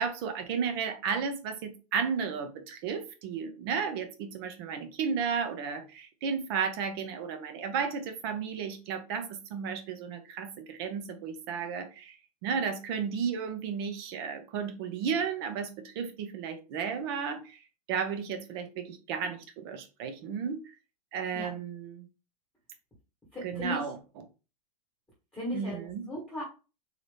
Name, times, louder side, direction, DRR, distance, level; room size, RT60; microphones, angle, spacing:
voice 1, 0.0-17.6 17.9-20.7 21.1-22.1 23.4-24.0 25.5-26.0, right 6 dB, 40° right, 7 dB, 0.8 m, -33 dB
voice 2, 23.3-23.8 25.3-26.4, equal, 5° left, -6 dB, 1.5 m, -36 dB
4.0 x 2.9 x 3.4 m, 0.32 s
supercardioid pair, 165°, 20 cm